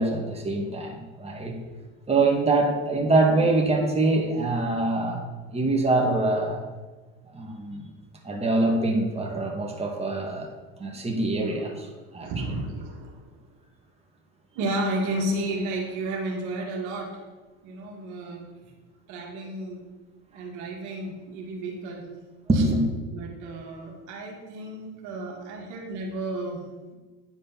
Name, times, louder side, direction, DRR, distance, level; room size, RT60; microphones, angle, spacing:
voice 1, 0.0-1.5 2.1-5.2 5.5-6.6 7.3-7.9 8.2-10.5 10.8-12.3 22.5-22.8, right 2 dB, 20° right, 0 dB, 2.1 m, -24 dB
voice 2, 12.2-13.3 14.6-17.2 17.6-18.4 19.1-19.9 20.3-22.1 22.5-22.6 23.1-26.9, right 1 dB, 70° right, 1 dB, 2.0 m, -32 dB
9.3 x 5.2 x 5.8 m, 1.3 s
supercardioid pair, 90°, 31 cm